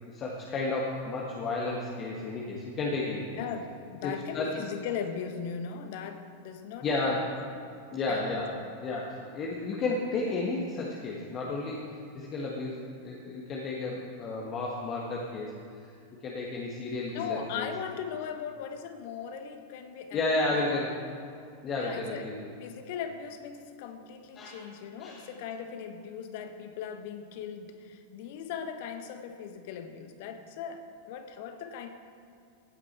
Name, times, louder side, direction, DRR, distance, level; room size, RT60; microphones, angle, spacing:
voice 1, 0.1-3.4 4.0-4.6 6.8-7.4 7.9-12.8 13.0-15.5 15.8-15.9 16.2-17.7 20.1-20.9 21.6-22.5 24.4-24.6 25.0-25.2, left 2 dB, 30° left, -3 dB, 1.6 m, -32 dB
voice 2, 3.4-7.3 8.1-8.3 17.1-20.2 20.6-20.7 21.8-22.3 22.6-31.9, left 7 dB, 50° left, 7 dB, 1.2 m, -38 dB
16.5 x 9.7 x 4.4 m, 2.4 s
figure-of-eight pair, 90°, 0 cm